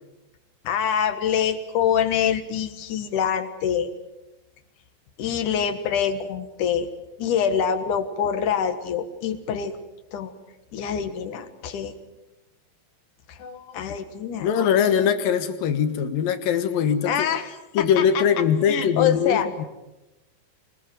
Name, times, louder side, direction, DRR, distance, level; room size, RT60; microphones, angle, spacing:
voice 1, 0.6-3.9 5.2-6.9 7.2-9.7 10.1-10.3 10.7-11.9 13.3-14.5 17.0-18.2 18.7-19.5, left 8 dB, 65° left, 10 dB, 2.9 m, -25 dB
voice 2, 14.4-17.3 17.7-19.7, left 8 dB, 80° left, 9 dB, 3.1 m, -22 dB
25.5 x 20.5 x 7.7 m, 0.99 s
omnidirectional pair, 4.1 m